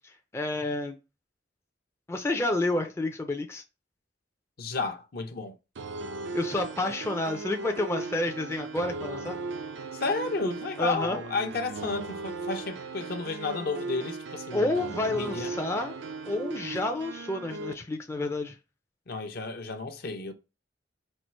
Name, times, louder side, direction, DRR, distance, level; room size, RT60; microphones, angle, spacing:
voice 1, 0.3-0.9 2.1-3.6 6.3-9.4 10.8-11.2 14.5-16.0 16.3-18.6, left 2 dB, 15° left, 0.4 m, -29 dB
voice 2, 4.6-5.5 9.9-14.8 15.1-15.5 19.1-20.3, left 3 dB, 55° left, 0.6 m, -32 dB
sound 1, 5.8-17.7, right 3 dB, 85° right, 0.5 m, -37 dB
4.3 x 2.4 x 4.4 m
head